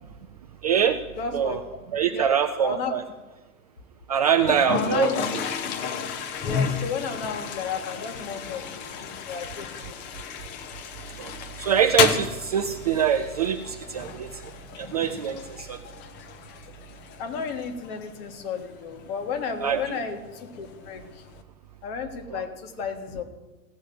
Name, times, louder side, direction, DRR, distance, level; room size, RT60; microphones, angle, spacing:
voice 1, 0.6-1.0 1.3-1.6 1.9-3.0 4.1-5.1 11.2-11.3 11.6-14.5 14.8-15.8 19.6-20.0 22.3-22.4, right 8 dB, 30° right, 8 dB, 0.4 m, -24 dB
voice 2, 1.2-1.6 2.1-2.9 4.7-5.2 6.4-10.0 17.2-21.2 21.8-23.2, left 6 dB, 40° left, 6 dB, 1.6 m, -33 dB
Toilet flush, 4.4-21.4, left 6 dB, 25° left, 0.8 m, -33 dB
16.0 x 6.3 x 7.9 m, 1.1 s
figure-of-eight pair, 100°, 44 cm